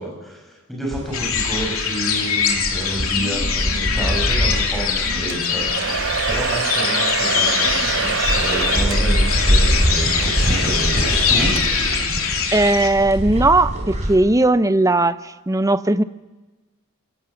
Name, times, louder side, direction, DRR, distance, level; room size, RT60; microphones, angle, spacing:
voice 1, 0.0-5.7 6.3-11.6, right 1 dB, ahead, -1 dB, 6.7 m, -29 dB
sound 1, 0.9-14.1, equal, 35° right, 4.6 m, -24 dB
sound 2, 1.1-12.9, left 6 dB, 75° left, 3.1 m, -23 dB
Domestic sounds home sounds, 5.3-12.0, right 7 dB, 65° right, 0.7 m, -27 dB
voice 2, 12.5-15.1 15.5-16.0, right 2 dB, 15° right, 14 dB, 0.6 m, -17 dB
28.0 x 17.5 x 7.1 m, 1.2 s
head